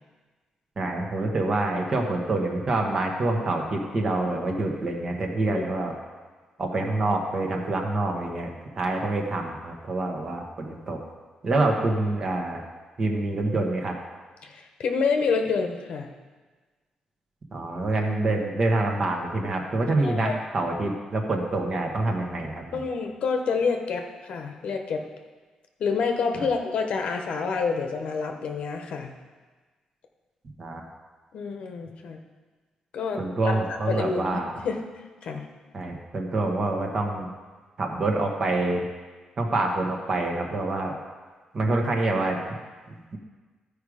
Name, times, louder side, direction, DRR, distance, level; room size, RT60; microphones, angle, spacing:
voice 1, 0.8-5.9 6.6-11.0 11.4-12.6 13.0-14.0 17.5-22.8 26.3-26.5 30.6-30.8 33.2-34.5 35.7-37.3 37.8-38.9 39.4-40.9 41.5-42.6 42.9-43.2, right 2 dB, 35° right, 1 dB, 1.1 m, -26 dB
voice 2, 14.4-16.1 20.0-20.3 22.7-25.0 25.8-29.1 31.3-32.2 32.9-33.6 33.9-34.3 34.6-34.8 35.2-35.5, left 5 dB, 65° left, 4 dB, 0.9 m, -28 dB
13.5 x 5.0 x 4.9 m, 1.4 s
wide cardioid pair, 160°, 2 cm